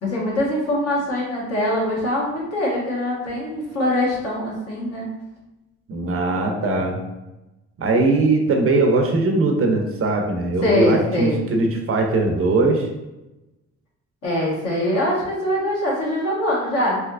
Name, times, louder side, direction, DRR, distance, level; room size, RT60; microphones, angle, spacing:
voice 1, 0.0-5.1 10.6-11.4 14.2-17.0, left 1 dB, 55° left, -5 dB, 1.3 m, -23 dB
voice 2, 5.9-7.0 7.8-12.9, right 3 dB, 45° right, 2 dB, 0.6 m, -20 dB
3.1 x 2.8 x 2.4 m, 1.0 s
cardioid pair, 90°, 30 cm